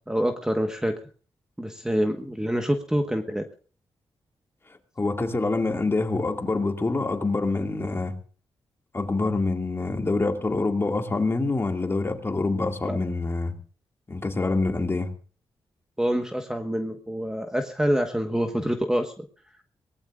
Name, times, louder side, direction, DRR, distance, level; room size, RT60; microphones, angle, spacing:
voice 1, 0.1-0.9 1.6-3.4 12.8-13.0 16.0-19.2, equal, 5° right, 1.4 m, -26 dB
voice 2, 5.0-8.2 8.9-13.5 14.1-15.1, left 3 dB, 25° left, 2.3 m, -26 dB
24.0 x 18.5 x 2.5 m
wide cardioid pair, 120°, 10 cm